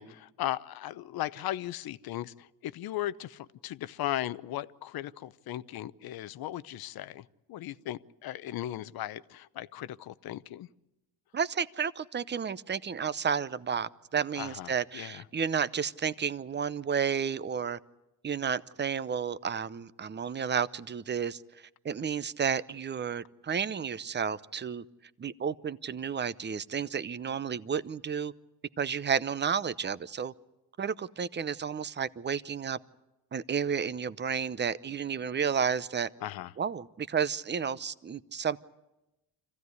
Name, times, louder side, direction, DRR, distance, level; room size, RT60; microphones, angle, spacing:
voice 1, 0.0-10.7 14.3-15.2 36.2-36.5, left 13 dB, 65° left, 15 dB, 0.9 m, -37 dB
voice 2, 11.3-17.8 18.2-21.4 21.8-24.8 25.2-28.3 28.8-30.3 30.8-32.8 33.3-36.1 36.6-38.6, right 7 dB, 25° right, 16 dB, 0.8 m, -31 dB
25.5 x 15.5 x 9.6 m, 0.98 s
cardioid pair, 85°, 39 cm